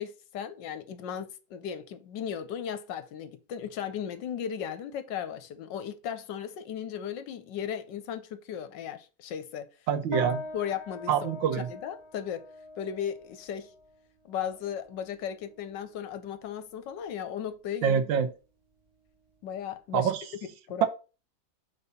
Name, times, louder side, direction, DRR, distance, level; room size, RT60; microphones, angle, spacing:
voice 1, 0.0-9.7 10.5-12.5 12.8-13.7 14.2-18.0 19.4-20.1 20.7-20.9, left 8 dB, 75° left, 1.4 m, -36 dB
voice 2, 9.9-10.4 11.1-11.7 17.8-18.3 19.9-20.2, right 8 dB, 90° right, 1.6 m, -26 dB
sound 1, 10.1-19.8, left 2 dB, 15° right, 1.7 m, -44 dB
5.4 x 4.1 x 5.4 m
omnidirectional pair, 2.0 m